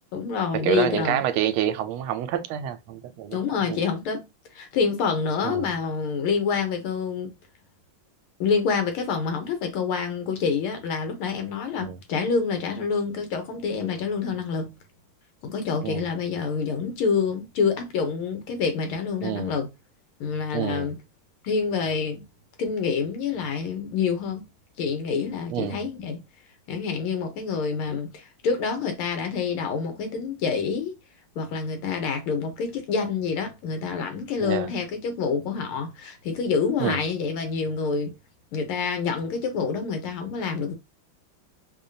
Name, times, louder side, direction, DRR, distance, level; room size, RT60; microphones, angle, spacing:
voice 1, 0.1-1.2 3.3-4.2 4.5-7.3 8.4-14.7 15.4-19.7 20.2-21.0 21.4-22.2 22.6-24.4 24.8-26.2 26.7-30.9 31.4-38.1 38.5-40.7, left 5 dB, 85° left, 1.8 m, -27 dB
voice 2, 0.6-3.4 3.7-3.8 5.4-5.7 11.8-12.0 15.8-16.0 19.2-19.5 20.5-20.9 25.5-25.8 34.4-34.7 36.8-37.0, right 10 dB, 85° right, 1.4 m, -27 dB
5.3 x 2.2 x 2.6 m
omnidirectional pair, 2.3 m